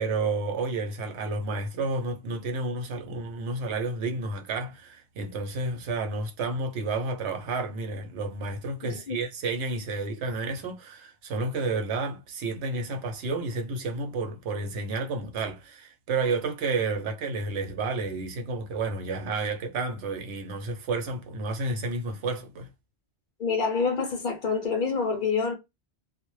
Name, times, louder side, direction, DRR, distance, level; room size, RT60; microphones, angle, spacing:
voice 1, 0.0-22.7, right 3 dB, 75° right, 0.9 m, -31 dB
voice 2, 8.8-9.2 23.4-25.5, left 5 dB, 60° left, 0.6 m, -27 dB
2.1 x 2.0 x 3.0 m
omnidirectional pair, 1.1 m